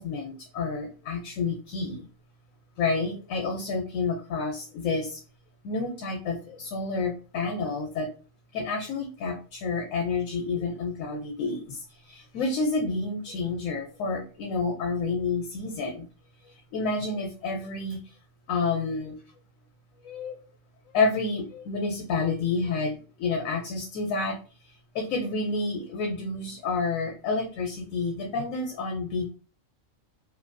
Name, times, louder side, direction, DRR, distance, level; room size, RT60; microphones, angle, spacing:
voice 1, 0.0-2.0 2.8-5.2 5.6-8.1 8.5-16.1 16.4-18.0 18.5-19.2 20.0-20.4 20.9-24.4 24.6-29.3, left 4 dB, 80° left, 2 dB, 1.0 m, -29 dB
2.6 x 2.5 x 2.2 m, 0.36 s
omnidirectional pair, 1.4 m